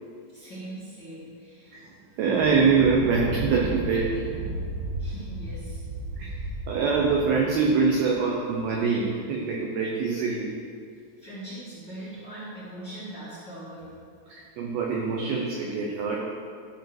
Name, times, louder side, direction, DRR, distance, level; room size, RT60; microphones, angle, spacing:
voice 1, 0.3-1.8 5.0-5.8 11.2-13.9, right 1 dB, 35° left, -11 dB, 1.7 m, -41 dB
voice 2, 2.2-4.2 6.2-6.3 6.7-10.6 14.3-16.2, right 5 dB, 85° right, -2 dB, 2.2 m, -24 dB
Thunder, 2.3-8.9, right 2 dB, 70° right, 2.8 m, -34 dB
13.5 x 5.5 x 6.1 m, 2.2 s
omnidirectional pair, 5.9 m